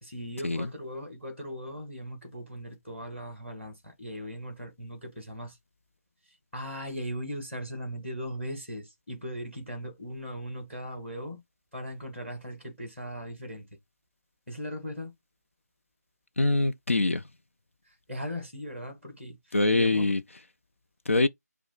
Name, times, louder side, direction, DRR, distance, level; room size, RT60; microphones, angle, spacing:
voice 1, 0.0-5.6 6.5-11.4 11.7-13.7 14.5-15.1 17.8-20.1, equal, 5° left, 1.2 m, -38 dB
voice 2, 16.4-17.2 19.5-20.2 21.1-21.3, left 2 dB, 50° left, 0.4 m, -24 dB
4.8 x 2.2 x 3.7 m
figure-of-eight pair, 160°, 9 cm